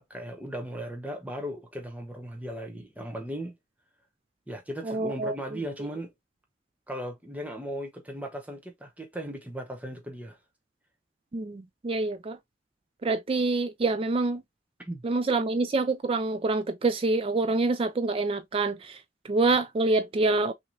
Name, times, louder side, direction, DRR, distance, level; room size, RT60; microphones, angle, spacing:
voice 1, 0.0-3.5 4.5-6.1 6.9-10.4 14.9-15.0, equal, 10° right, 0.8 m, -37 dB
voice 2, 4.9-5.3 11.3-12.4 13.0-14.4 15.0-19.0 19.3-20.5, right 3 dB, 30° right, 0.4 m, -26 dB
5.9 x 2.9 x 2.6 m
head